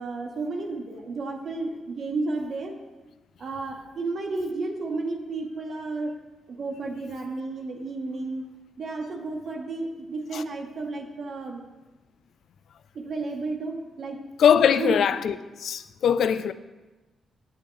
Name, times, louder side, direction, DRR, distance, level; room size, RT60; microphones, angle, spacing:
voice 1, 0.0-2.7 3.4-6.1 6.5-8.4 8.8-11.6 12.9-14.2 14.7-15.0, right 3 dB, 60° right, 1.0 m, -32 dB
voice 2, 14.4-16.5, left 8 dB, 70° left, 0.3 m, -21 dB
8.4 x 6.9 x 3.1 m
cardioid pair, 75°, 0 cm